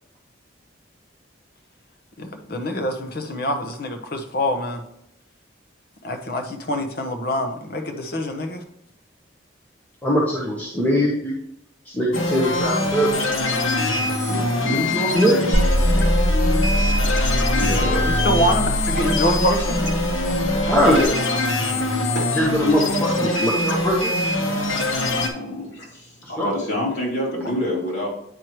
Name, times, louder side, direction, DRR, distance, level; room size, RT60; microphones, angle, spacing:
voice 1, 2.2-4.8 6.0-8.6 14.3-14.5 17.7-17.8 18.2-19.8 27.4-27.5, equal, 50° left, 6 dB, 0.9 m, -25 dB
voice 2, 10.0-11.3 11.9-13.1 14.6-15.6 20.7-21.1 22.3-24.2 26.4-26.5, equal, 10° left, -6 dB, 1.1 m, -21 dB
sound 1, 12.1-25.3, left 2 dB, 90° left, 1.2 m, -23 dB
sound 2, 15.5-21.1, equal, 35° left, 2.1 m, -23 dB
voice 3, 17.5-18.5 20.9-21.1 21.8-22.3 23.4-23.5 25.3-28.1, left 1 dB, 75° left, -4 dB, 2.9 m, -28 dB
9.3 x 4.6 x 3.1 m, 0.77 s
head